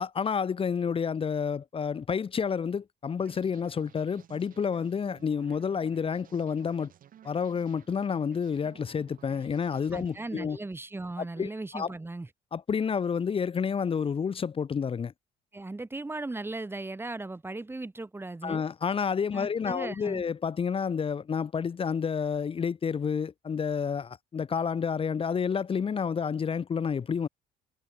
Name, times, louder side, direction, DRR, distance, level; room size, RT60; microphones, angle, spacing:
voice 1, 0.0-6.9 7.2-10.6 11.2-11.9 12.5-15.1 18.4-27.3, left 6 dB, 35° left, 1.3 m, -29 dB
sound 1, 3.2-10.9, right 10 dB, 55° right, 4.1 m, -56 dB
voice 2, 9.9-12.3 15.5-18.6 19.3-20.2, right 2 dB, 15° right, 3.7 m, -37 dB
cardioid pair, 110°, 17 cm